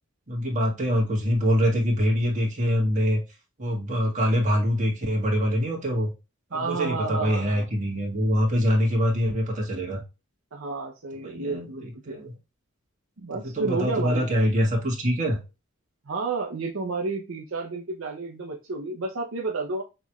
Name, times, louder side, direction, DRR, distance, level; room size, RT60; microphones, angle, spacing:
voice 1, 0.3-3.2 3.6-6.1 6.5-10.0 11.2-12.4 13.4-15.4, equal, 35° right, -2 dB, 1.6 m, -24 dB
voice 2, 6.5-7.7 10.5-12.3 13.2-14.3 16.1-19.8, right 3 dB, 70° right, 2 dB, 0.7 m, -31 dB
6.1 x 3.1 x 2.3 m, 0.28 s
head